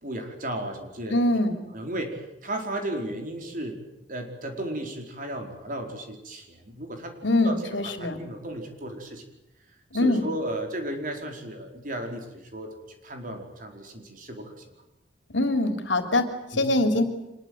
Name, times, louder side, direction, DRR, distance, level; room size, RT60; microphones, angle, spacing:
voice 1, 0.0-1.2 1.7-3.8 4.1-7.1 7.4-7.6 8.0-9.2 10.0-12.7 13.0-14.5 16.5-16.7, right 1 dB, 45° right, 3 dB, 4.8 m, -34 dB
voice 2, 1.1-1.6 7.2-8.2 9.9-10.2 15.3-17.0, left 2 dB, 80° left, 7 dB, 3.4 m, -23 dB
25.5 x 21.5 x 8.1 m, 0.90 s
head